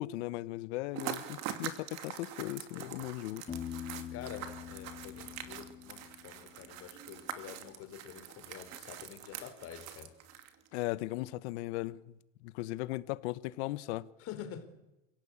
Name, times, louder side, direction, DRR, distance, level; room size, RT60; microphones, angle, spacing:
voice 1, 0.0-3.4 10.7-14.1, left 18 dB, 65° left, 1.3 m, -37 dB
sound 1, 0.9-10.7, right 10 dB, 45° right, 2.7 m, -44 dB
voice 2, 2.7-3.1 4.1-10.1 14.2-14.6, left 9 dB, 40° left, 3.9 m, -47 dB
Piano, 3.5-7.2, left 9 dB, 15° left, 1.8 m, -45 dB
28.0 x 17.5 x 8.7 m
supercardioid pair, 150°, 36 cm